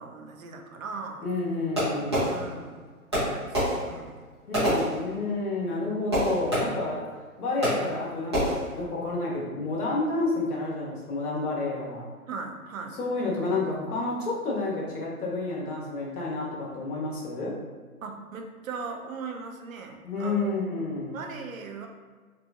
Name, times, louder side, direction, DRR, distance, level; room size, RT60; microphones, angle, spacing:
voice 1, 0.0-1.3 2.2-2.8 3.3-4.2 12.3-13.0 18.0-20.5 21.1-21.9, right 4 dB, 65° right, 3 dB, 0.5 m, -39 dB
voice 2, 1.2-2.3 4.5-7.0 7.4-12.0 13.0-17.5 20.0-21.2, left 3 dB, 80° left, -4 dB, 1.0 m, -30 dB
Fireworks, 1.7-2.8 3.1-5.5 6.1-7.0 7.6-8.0 8.3-8.8, equal, 20° right, 0.6 m, -28 dB
2.9 x 2.6 x 2.3 m, 1.4 s
hypercardioid pair, 170°, 44 cm